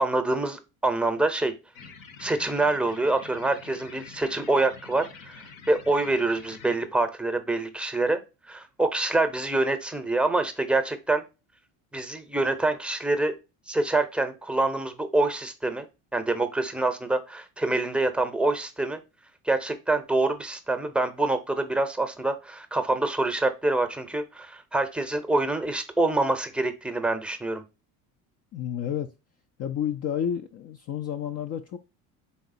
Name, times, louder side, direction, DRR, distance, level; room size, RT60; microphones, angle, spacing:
voice 1, 0.0-1.5 2.2-8.2 8.5-11.2 11.9-13.3 13.7-15.8 16.1-19.0 19.4-27.6, right 2 dB, ahead, 0.7 m, -26 dB
sound 1, 1.7-6.7, left 5 dB, 55° left, 0.9 m, -47 dB
voice 2, 28.5-29.1 29.6-31.8, left 9 dB, 35° left, 0.4 m, -30 dB
4.2 x 3.5 x 2.6 m
hypercardioid pair, 70°, 43 cm